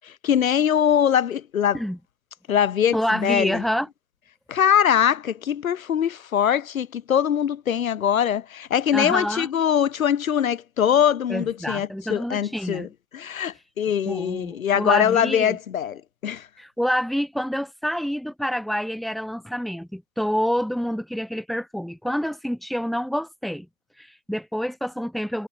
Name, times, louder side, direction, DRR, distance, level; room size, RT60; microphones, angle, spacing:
voice 1, 0.2-1.8 2.5-3.6 4.5-12.9 13.1-16.5, left 9 dB, 60° left, 3.9 m, -22 dB
voice 2, 2.9-3.9 8.9-9.5 11.3-12.9 14.1-15.6 16.6-23.7 24.0-25.5, equal, ahead, 6.1 m, -27 dB
hypercardioid pair, 155°, 46 cm